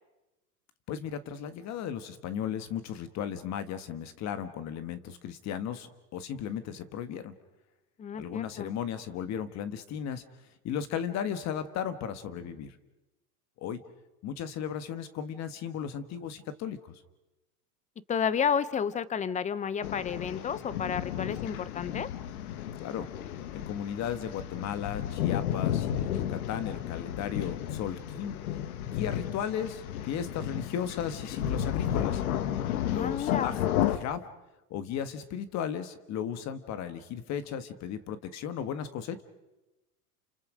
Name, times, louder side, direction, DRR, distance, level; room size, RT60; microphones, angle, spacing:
voice 1, 0.9-7.4 8.2-10.2 10.6-12.8 13.6-13.8 14.2-17.0 22.8-23.1 23.5-28.4 28.9-32.2 32.8-33.6 33.9-34.3 34.7-39.2, left 8 dB, 35° left, 11 dB, 1.6 m, -35 dB
voice 2, 8.0-8.7 18.1-22.1 32.9-33.6, left 7 dB, 15° left, 17 dB, 0.8 m, -31 dB
sound 1, 19.8-34.0, left 11 dB, 70° left, 1.6 m, -33 dB
29.5 x 27.0 x 5.1 m, 1.0 s
hypercardioid pair, 120°, 45 cm